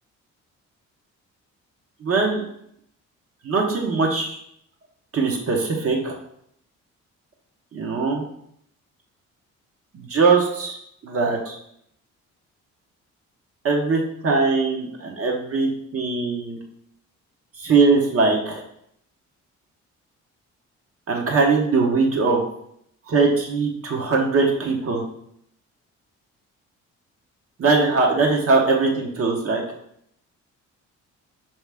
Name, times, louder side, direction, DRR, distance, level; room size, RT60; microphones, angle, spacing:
voice 1, 2.0-2.5 3.4-4.4 5.1-6.1 7.7-8.2 9.9-10.8 11.0-11.6 13.6-16.6 17.6-18.6 21.1-22.4 23.1-25.0 27.6-29.6, right 4 dB, 50° right, 0 dB, 1.1 m, -21 dB
4.8 x 3.0 x 3.4 m, 0.72 s
cardioid pair, 90°, 30 cm